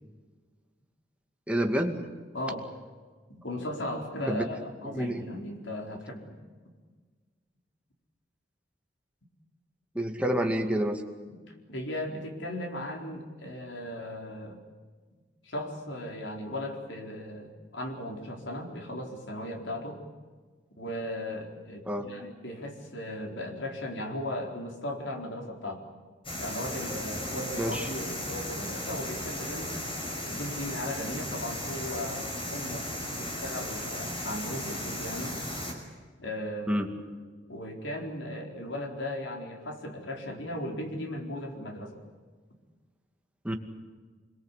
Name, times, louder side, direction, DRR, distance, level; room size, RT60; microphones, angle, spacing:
voice 1, 1.5-2.1 4.3-4.5 4.8-5.3 9.9-11.0 21.9-22.1 27.6-27.9 36.7-36.9 43.4-43.5, equal, 5° right, 3 dB, 2.3 m, -28 dB
voice 2, 2.3-2.7 3.3-6.4 11.3-14.6 15.4-20.0 20.8-25.8 26.4-29.8 30.3-35.4 36.2-36.8 37.5-42.0, left 1 dB, 85° left, 3 dB, 4.4 m, -37 dB
sound 1, 26.2-35.7, left 1 dB, 30° left, 5.5 m, -36 dB
25.5 x 22.0 x 8.4 m, 1.5 s
head